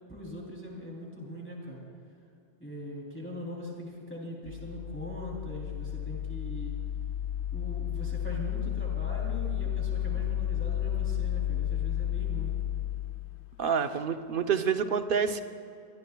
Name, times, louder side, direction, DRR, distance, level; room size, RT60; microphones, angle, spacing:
voice 1, 0.1-1.8 2.6-6.8 7.5-12.5, equal, 10° left, -3 dB, 3.0 m, -41 dB
sound 1, 4.5-13.5, left 11 dB, 90° left, 1.1 m, -32 dB
voice 2, 13.6-15.4, right 6 dB, 55° right, 8 dB, 0.9 m, -27 dB
25.0 x 21.0 x 2.3 m, 2.5 s
omnidirectional pair, 1.1 m